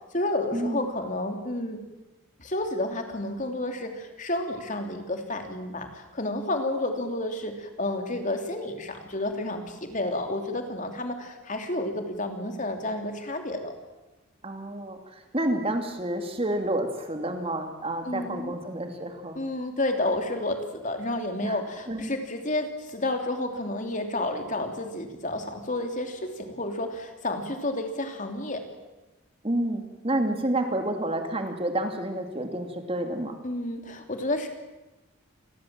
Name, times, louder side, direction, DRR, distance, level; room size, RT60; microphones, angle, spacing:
voice 1, 0.1-1.8 2.4-13.7 18.0-18.5 19.3-28.6 33.4-34.5, left 1 dB, 40° left, 5 dB, 3.0 m, -30 dB
voice 2, 14.4-19.4 21.4-21.6 21.9-22.1 29.4-33.4, right 1 dB, 30° right, 5 dB, 2.6 m, -29 dB
28.0 x 20.5 x 7.6 m, 1.1 s
head